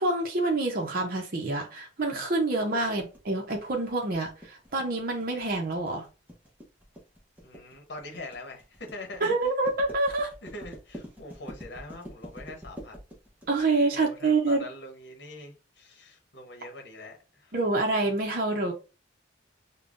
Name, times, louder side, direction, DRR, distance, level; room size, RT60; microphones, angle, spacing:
voice 1, 0.0-6.1 9.2-10.3 13.5-14.6 17.5-18.7, right 2 dB, 50° right, 0.7 m, -27 dB
sound 1, 3.0-14.5, equal, 10° right, 0.8 m, -46 dB
voice 2, 7.4-9.4 10.4-13.0 13.9-17.7, left 2 dB, 60° left, 1.0 m, -43 dB
5.2 x 2.2 x 2.5 m
head